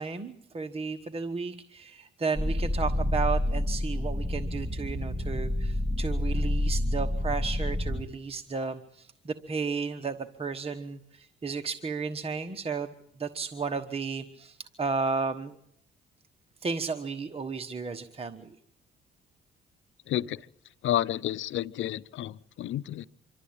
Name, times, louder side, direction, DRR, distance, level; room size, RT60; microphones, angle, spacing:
voice 1, 0.0-12.9 13.2-15.5 16.6-18.5, right 4 dB, 30° right, 7 dB, 1.2 m, -33 dB
sound 1, 2.4-8.0, left 1 dB, ahead, 1.8 m, -28 dB
voice 2, 20.1-20.4 20.8-23.1, left 12 dB, 75° left, 16 dB, 0.7 m, -30 dB
26.0 x 12.5 x 8.8 m, 0.71 s
cardioid pair, 90°, 20 cm